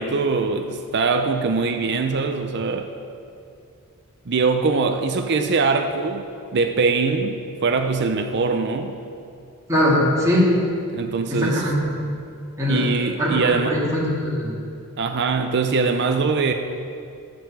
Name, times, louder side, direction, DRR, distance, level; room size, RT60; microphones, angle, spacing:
voice 1, 0.0-2.9 4.3-8.9 10.9-11.7 12.7-13.8 15.0-16.5, right 4 dB, 50° right, 6 dB, 0.5 m, -22 dB
voice 2, 9.7-10.5 11.3-11.8 12.6-12.8 13.2-14.5, left 1 dB, 15° right, -6 dB, 2.4 m, -21 dB
11.0 x 5.3 x 7.4 m, 2.5 s
head